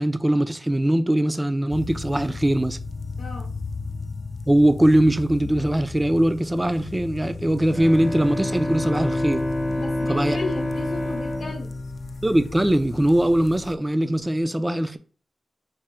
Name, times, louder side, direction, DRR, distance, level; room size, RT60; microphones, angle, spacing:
voice 1, 0.0-2.8 4.5-9.4 10.1-10.4 12.2-15.0, right 1 dB, 15° right, 0.4 m, -21 dB
sound 1, 1.7-13.8, left 4 dB, 65° left, 0.3 m, -36 dB
Bowed string instrument, 7.7-12.9, left 1 dB, 35° left, 1.0 m, -28 dB
voice 2, 9.8-11.7, left 3 dB, 90° left, 0.9 m, -34 dB
4.8 x 2.2 x 4.3 m
wide cardioid pair, 75°, 0 cm